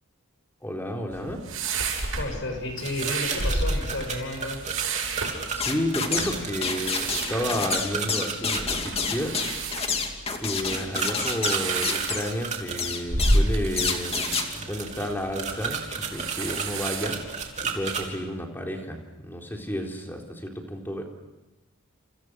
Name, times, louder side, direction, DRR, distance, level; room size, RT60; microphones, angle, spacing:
voice 1, 0.6-1.4 5.5-9.4 10.4-17.2 17.6-21.0, equal, 10° left, 1 dB, 3.9 m, -31 dB
sound 1, 1.1-18.1, right 2 dB, 85° right, 7.9 m, -31 dB
voice 2, 2.2-4.6, left 2 dB, 60° left, 5 dB, 6.9 m, -32 dB
sound 2, 2.8-8.6 10.7-12.9 13.7-18.0, right 6 dB, 35° right, 3.4 m, -33 dB
sound 3, 5.6-6.4 6.6-12.3 12.8-13.4 13.8-14.5, left 5 dB, 30° left, 2.5 m, -28 dB
29.5 x 28.5 x 6.4 m, 1.0 s
head